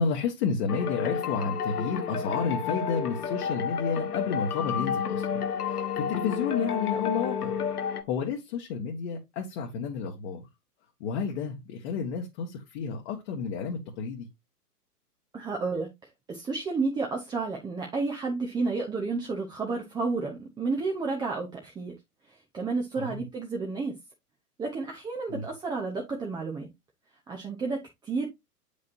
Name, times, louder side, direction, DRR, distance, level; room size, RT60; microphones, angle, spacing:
voice 1, 0.0-5.4 5.7-7.5 8.1-10.5 11.0-14.3 23.0-23.2 25.3-25.4, left 5 dB, 40° left, 1.5 m, -31 dB
sound 1, 0.7-8.0, left 7 dB, 70° left, 1.2 m, -30 dB
voice 2, 15.3-15.9 16.3-21.9 22.3-23.9 24.6-26.7 27.3-28.3, right 4 dB, 10° right, 0.8 m, -31 dB
8.0 x 5.3 x 2.6 m
figure-of-eight pair, 115°, 47 cm